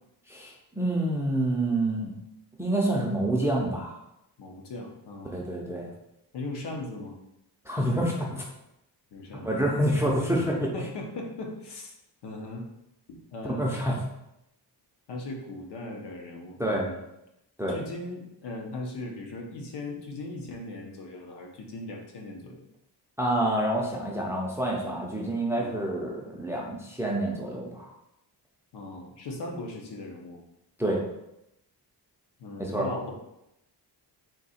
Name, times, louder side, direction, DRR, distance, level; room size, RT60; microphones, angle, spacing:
voice 1, 0.3-2.1 2.6-4.0 5.3-5.9 7.7-8.4 9.4-10.7 13.4-14.0 16.6-16.9 17.6-17.8 23.2-27.9 30.8-31.0 32.6-32.9, right 1 dB, 5° right, -2 dB, 0.4 m, -27 dB
voice 2, 4.4-5.4 6.3-7.2 9.1-9.5 10.7-11.9 12.2-12.7 13.1-13.8 15.1-17.0 17.7-22.6 25.6-25.8 28.7-30.4 32.4-33.1, left 2 dB, 70° left, 1 dB, 0.9 m, -38 dB
3.8 x 2.7 x 4.1 m, 0.86 s
wide cardioid pair, 165°, 42 cm